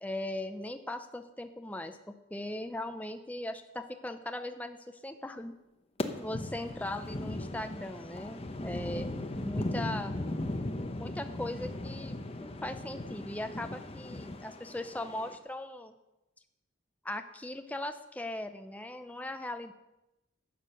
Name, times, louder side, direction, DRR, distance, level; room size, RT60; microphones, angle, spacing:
voice 1, 0.0-2.0 2.3-5.5 6.2-9.1 9.4-10.1 11.0-15.9 17.0-19.7, left 1 dB, 10° left, 7 dB, 0.6 m, -39 dB
sound 1, 6.0-15.3, left 1 dB, 30° left, 0.8 m, -38 dB
11.5 x 7.4 x 6.4 m, 0.94 s
head